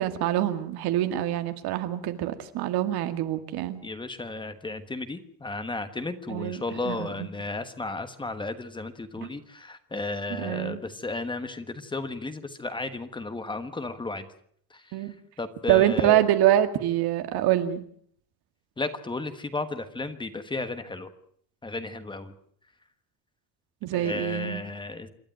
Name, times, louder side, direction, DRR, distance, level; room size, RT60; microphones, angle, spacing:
voice 1, 0.0-3.8 6.3-6.6 6.9-7.3 9.2-9.3 10.4-10.8 14.9-15.1 15.7-17.8 23.8-24.6, right 13 dB, 80° right, 8 dB, 2.2 m, -25 dB
voice 2, 3.8-14.3 14.7-15.0 15.4-16.3 18.8-21.1 21.6-22.3 23.9-25.1, left 2 dB, 10° left, 10 dB, 1.3 m, -34 dB
27.5 x 12.0 x 9.1 m, 0.64 s
cardioid pair, 175°, 37 cm